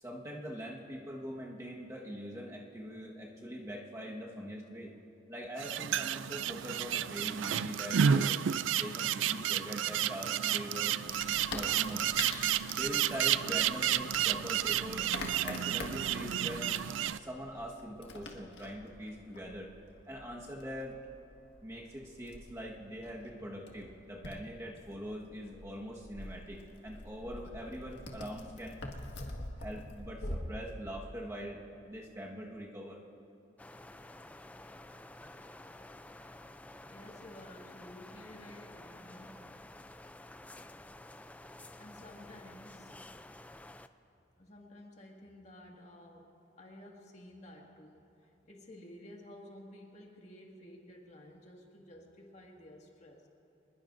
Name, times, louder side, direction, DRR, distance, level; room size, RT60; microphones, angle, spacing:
voice 1, 0.0-4.9 5.3-8.4 8.7-10.9 11.5-12.1 12.7-15.1 15.4-16.8 17.1-19.7 20.1-21.0 21.6-28.8 29.6-31.6 31.9-33.0, equal, 15° right, -2 dB, 1.4 m, -43 dB
sound 1, 5.6-17.2, right 9 dB, 80° right, 0.4 m, -31 dB
Wood, 11.1-30.4, left 2 dB, 65° left, 1.7 m, -46 dB
sound 2, 33.6-43.9, left 1 dB, 10° left, 0.3 m, -51 dB
voice 2, 36.9-39.5 41.8-43.0 44.4-46.3 46.6-48.1 48.4-53.3, left 1 dB, 35° left, -1 dB, 1.9 m, -53 dB
26.0 x 20.5 x 2.6 m, 2.7 s
head